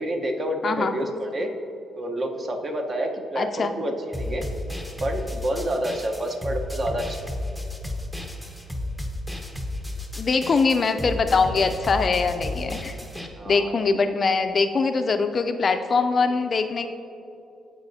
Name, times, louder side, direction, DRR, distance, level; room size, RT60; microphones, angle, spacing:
voice 1, 0.0-1.5 2.0-4.4 5.0-7.2 13.4-13.8, right 1 dB, 40° right, 3 dB, 0.9 m, -28 dB
voice 2, 0.6-0.9 3.4-3.7 10.2-12.9 13.5-16.9, left 4 dB, 40° left, 7 dB, 0.4 m, -22 dB
sound 1, 4.1-13.3, left 1 dB, 5° right, 0.8 m, -33 dB
14.5 x 4.9 x 2.7 m, 2.8 s
cardioid pair, 90°, 0 cm